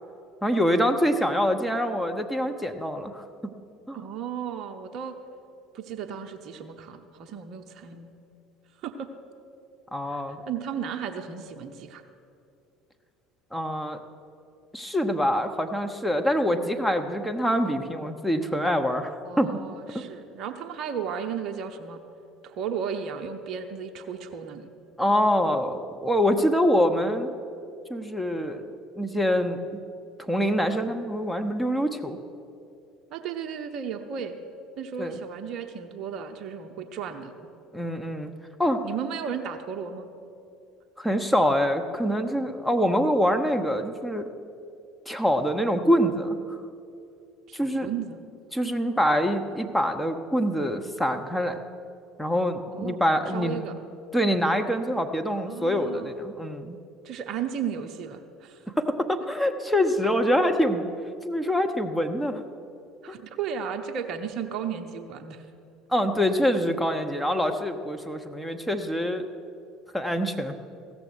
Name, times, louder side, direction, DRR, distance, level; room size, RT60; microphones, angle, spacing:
voice 1, 0.4-3.5 3.9-4.0 9.9-10.4 13.5-14.0 14.7-19.6 19.9-20.0 25.0-27.3 27.9-29.8 30.3-32.2 35.0-35.2 37.7-38.3 38.6-38.8 41.0-44.3 45.1-46.6 47.5-47.9 48.5-51.6 52.2-53.6 54.1-56.8 58.7-60.8 61.2-62.4 65.9-69.2 69.9-70.6, equal, 5° left, 4 dB, 0.8 m, -25 dB
voice 2, 3.9-5.2 5.7-8.1 8.8-9.1 10.1-12.0 19.2-22.0 22.4-24.7 33.1-34.4 34.8-37.3 38.8-40.1 42.2-42.5 47.5-48.2 52.7-53.0 53.3-53.8 55.3-56.1 57.0-58.6 63.0-65.5, right 7 dB, 50° right, 7 dB, 0.7 m, -34 dB
15.5 x 7.0 x 6.1 m, 2.5 s
figure-of-eight pair, 60°, 0 cm